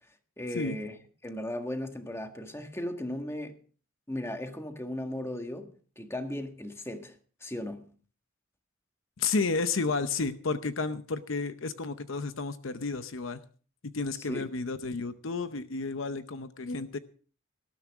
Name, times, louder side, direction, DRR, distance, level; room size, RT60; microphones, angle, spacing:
voice 1, 0.4-0.9 1.2-3.5 4.1-5.7 6.0-7.9 14.3-14.5, left 1 dB, 15° left, 5 dB, 1.7 m, -36 dB
voice 2, 9.2-13.4 13.9-17.0, left 4 dB, 65° left, 11 dB, 0.8 m, -31 dB
19.0 x 13.0 x 3.6 m, 0.40 s
head